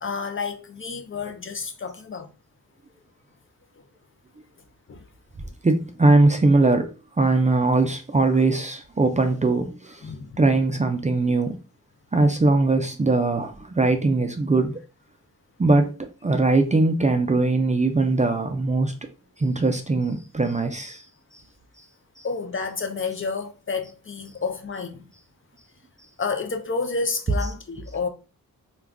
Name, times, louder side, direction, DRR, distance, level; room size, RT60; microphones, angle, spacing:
voice 1, 0.0-2.3 4.9-5.0 8.3-8.4 10.0-10.4 22.2-25.1 26.2-28.1, left 4 dB, 35° left, 0.5 m, -30 dB
voice 2, 5.6-10.0 10.4-11.6 12.1-14.8 15.6-18.9 19.4-21.0, right 3 dB, 20° right, 0.4 m, -21 dB
2.3 x 2.3 x 3.4 m
cardioid pair, 60°, 35 cm